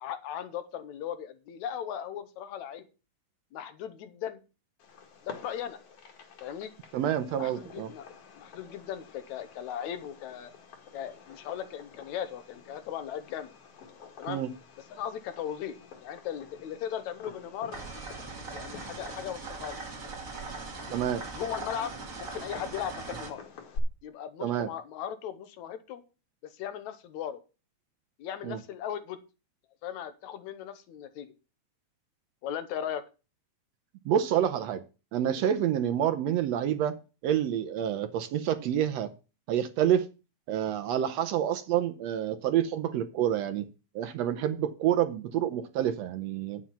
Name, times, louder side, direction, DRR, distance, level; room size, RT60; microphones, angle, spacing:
voice 1, 0.0-2.9 3.5-4.4 5.2-5.8 6.4-6.7 7.4-8.1 8.4-10.5 10.9-13.5 14.2-14.4 14.9-15.8 16.0-17.8 18.5-19.8 20.7-21.0 21.3-23.4 24.0-26.0 26.4-27.4 28.2-29.2 29.8-31.3 32.4-33.0, left 9 dB, 75° left, 11 dB, 2.2 m, -37 dB
Fireworks, 4.8-23.8, left 5 dB, 55° left, 2.6 m, -49 dB
voice 2, 6.9-7.9 14.3-14.5 20.9-21.2 24.4-24.7 28.4-28.6 34.0-34.8 35.1-36.9 37.2-39.1 39.5-40.1 40.5-43.7 43.9-46.6, right 10 dB, 75° right, 10 dB, 1.7 m, -28 dB
Air Pump, 17.7-23.3, right 4 dB, 35° right, 1.7 m, -40 dB
9.5 x 7.4 x 5.7 m, 0.32 s
omnidirectional pair, 3.4 m